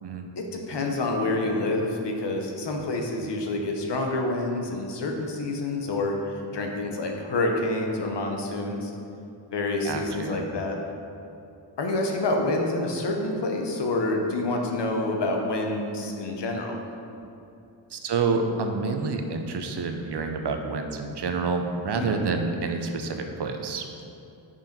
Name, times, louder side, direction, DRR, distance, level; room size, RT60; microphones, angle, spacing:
voice 1, 0.4-8.9 9.5-10.8 11.8-16.8 21.9-22.2, left 2 dB, 60° left, 2 dB, 0.9 m, -27 dB
voice 2, 9.8-10.4 17.9-23.8, right 4 dB, 60° right, 5 dB, 0.7 m, -28 dB
5.6 x 5.1 x 5.2 m, 2.8 s
wide cardioid pair, 130°, 47 cm